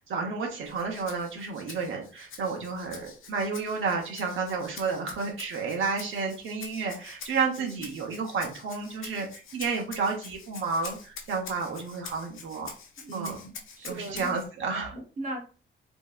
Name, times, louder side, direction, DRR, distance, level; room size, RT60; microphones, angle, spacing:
voice 1, 0.1-12.7 13.1-13.4 13.8-14.9, right 4 dB, 75° right, 1 dB, 0.8 m, -31 dB
Rattle (instrument), 0.6-14.5, left 5 dB, 90° left, 0.7 m, -46 dB
voice 2, 13.0-14.3 14.9-15.4, right 2 dB, 40° right, 1 dB, 0.8 m, -38 dB
3.1 x 2.7 x 2.3 m, 0.36 s
wide cardioid pair, 170°, 20 cm